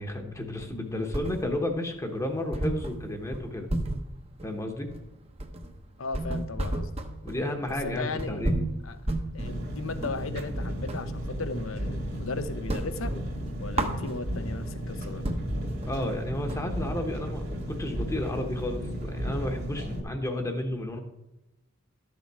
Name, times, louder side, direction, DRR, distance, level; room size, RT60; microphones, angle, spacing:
voice 1, 0.0-3.7 4.4-4.9 7.2-8.6 15.8-21.0, left 1 dB, 15° left, 3 dB, 1.0 m, -32 dB
sound 1, 0.6-1.8 2.1-2.2 2.5-11.1 11.5-12.2 12.5-14.5 14.9-15.0 15.2-19.4, right 1 dB, 30° right, 0.9 m, -33 dB
voice 2, 6.0-6.9 7.8-8.6 8.8-9.0 9.3-13.1 13.6-15.2, left 3 dB, 85° left, 11 dB, 0.8 m, -36 dB
Engine, 9.4-20.0, equal, 50° right, 1.9 m, -34 dB
12.0 x 6.9 x 4.8 m, 0.94 s
head